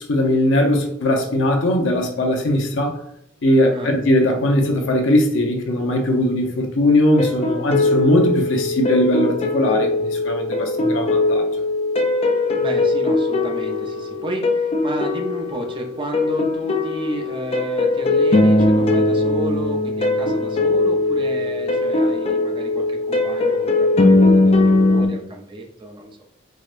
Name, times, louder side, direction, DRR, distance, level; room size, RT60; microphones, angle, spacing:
voice 1, 0.1-3.0 3.4-11.5, left 1 dB, 80° left, 2 dB, 0.6 m, -19 dB
sound 1, 7.2-25.1, left 2 dB, 30° left, 0.4 m, -20 dB
voice 2, 12.6-26.2, right 1 dB, 25° right, 1 dB, 0.5 m, -32 dB
4.7 x 2.1 x 2.4 m, 0.73 s
head